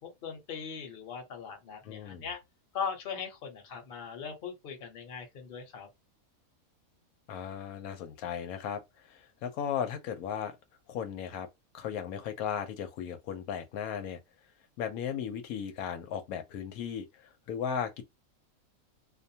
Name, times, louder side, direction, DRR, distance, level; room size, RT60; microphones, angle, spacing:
voice 1, 0.0-2.4 2.7-5.9, left 6 dB, 45° left, 0.9 m, -39 dB
voice 2, 1.8-2.3 7.3-8.8 9.1-10.6 10.9-11.5 11.7-14.2 14.8-18.0, left 8 dB, 90° left, 1.1 m, -36 dB
2.5 x 2.1 x 2.7 m
omnidirectional pair, 1.5 m